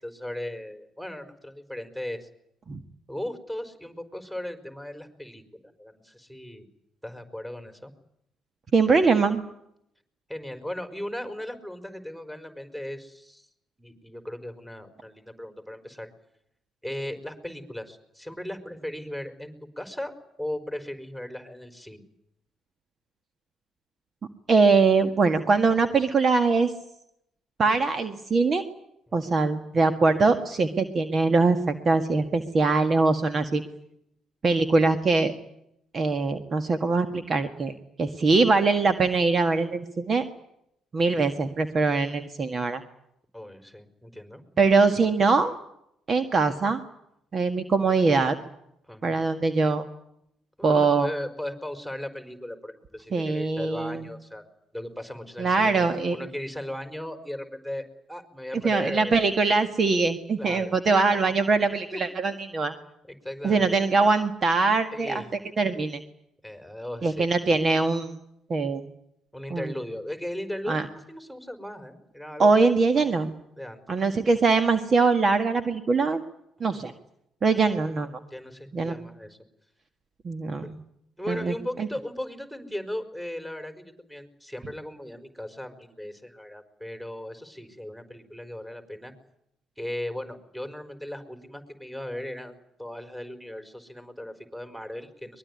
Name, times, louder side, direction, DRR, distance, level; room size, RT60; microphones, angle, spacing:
voice 1, 0.0-2.3 3.1-5.4 5.8-6.7 7.0-7.9 10.3-13.5 13.8-16.1 16.8-20.1 20.4-22.0 29.2-29.3 43.3-44.4 48.8-49.2 50.6-54.4 54.7-59.2 60.4-60.7 61.1-61.3 61.9-62.0 63.1-63.7 64.9-65.3 66.4-67.3 69.3-72.5 72.9-73.2 73.6-73.8 76.7-76.9 77.7-77.8 78.3-79.4 81.2-89.1 89.8-95.4, left 1 dB, 5° right, 7 dB, 4.9 m, -37 dB
voice 2, 8.7-9.4 24.5-26.7 27.6-28.6 29.1-33.6 34.4-35.3 35.9-37.7 38.0-40.2 40.9-42.8 44.6-45.5 46.1-46.8 47.3-48.4 49.0-49.8 50.6-51.1 53.1-54.0 55.4-56.2 58.6-62.7 63.4-65.2 65.6-66.0 67.0-68.1 68.5-68.8 69.5-69.7 70.7-70.8 72.4-73.3 73.9-76.2 76.6-76.9 77.4-78.1 78.7-78.9 80.2-80.8 81.3-81.9, right 4 dB, 45° right, 9 dB, 1.8 m, -22 dB
23.0 x 21.5 x 9.8 m, 0.78 s
hypercardioid pair, 50°, 0 cm